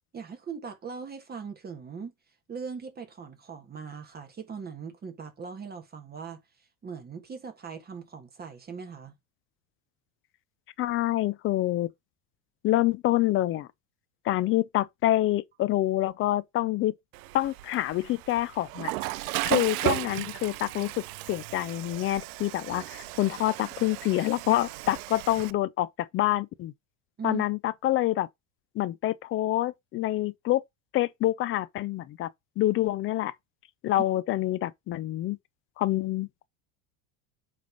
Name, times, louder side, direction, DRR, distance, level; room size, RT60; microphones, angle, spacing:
voice 1, 0.1-2.1 2.5-9.1 27.2-27.4, right 6 dB, 20° right, 1.5 m, -40 dB
voice 2, 10.8-11.9 12.6-13.7 14.2-16.9 17.3-18.9 19.4-20.9 21.3-26.7 27.2-28.3 28.7-30.6 30.9-32.3 32.6-33.3 33.8-35.4 35.8-36.5, left 15 dB, 30° left, 0.4 m, -27 dB
Water / Toilet flush, 17.1-25.5, right 19 dB, 85° right, 0.6 m, -35 dB
7.7 x 3.4 x 5.3 m
supercardioid pair, 140°, 42 cm